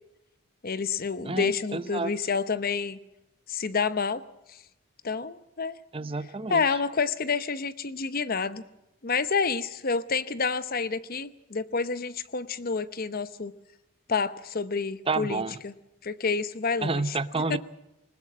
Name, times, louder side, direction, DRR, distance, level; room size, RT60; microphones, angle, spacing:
voice 1, 0.6-3.0 3.5-4.2 5.0-5.8 6.5-8.6 9.0-13.5 14.1-15.7 16.0-17.2 17.5-17.6, left 5 dB, 45° left, 14 dB, 0.8 m, -29 dB
voice 2, 1.2-2.1 5.9-6.8 15.1-15.6 16.8-17.6, right 3 dB, 25° right, 14 dB, 0.7 m, -30 dB
21.0 x 20.0 x 7.4 m, 0.92 s
head